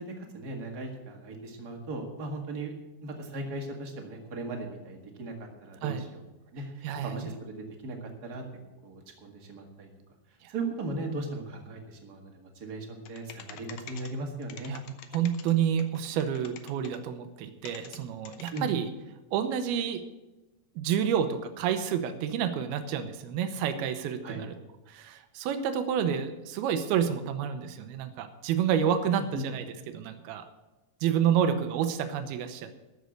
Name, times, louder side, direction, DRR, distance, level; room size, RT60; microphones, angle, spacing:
voice 1, 0.0-2.7 3.0-6.2 6.5-8.4 8.8-9.9 10.5-14.7 18.5-18.7 24.2-24.4 29.3-29.5, right 2 dB, 40° right, 2 dB, 1.5 m, -38 dB
voice 2, 6.8-7.3 10.4-10.5 14.7-14.8 15.1-18.9 19.3-20.0 20.8-24.5 24.9-30.5 31.0-32.7, right 8 dB, 85° right, 8 dB, 2.8 m, -29 dB
sound 1, 13.1-14.1 14.4-15.5 15.8-17.0 17.7-18.0 18.3-18.6, left 9 dB, 90° left, 1.5 m, -45 dB
13.5 x 6.4 x 8.1 m, 1.1 s
omnidirectional pair, 4.4 m